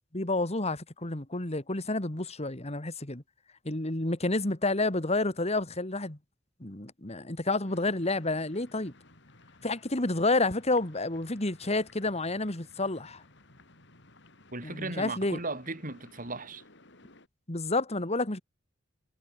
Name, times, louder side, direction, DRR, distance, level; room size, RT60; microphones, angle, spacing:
voice 1, 0.1-3.2 3.6-6.2 6.6-8.9 9.6-13.2 14.6-15.4 17.5-18.4, left 2 dB, 35° left, 2.3 m, -30 dB
sound 1, 7.6-17.3, left 2 dB, 65° left, 6.2 m, -57 dB
voice 2, 14.5-16.6, right 2 dB, 45° right, 5.6 m, -36 dB
head